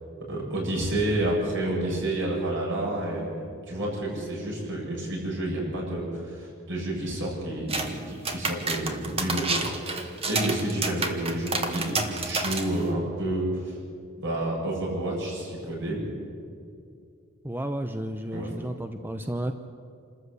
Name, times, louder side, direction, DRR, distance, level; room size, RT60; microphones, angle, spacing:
voice 1, 0.3-3.3 3.7-13.7 14.2-16.1 18.3-18.5, right 1 dB, 60° right, -2 dB, 7.9 m, -29 dB
sound 1, 7.7-7.9 8.2-12.8, right 3 dB, 30° right, 1.8 m, -29 dB
voice 2, 17.4-19.5, right 1 dB, 10° right, 7 dB, 0.7 m, -32 dB
28.0 x 13.5 x 8.3 m, 2.4 s
head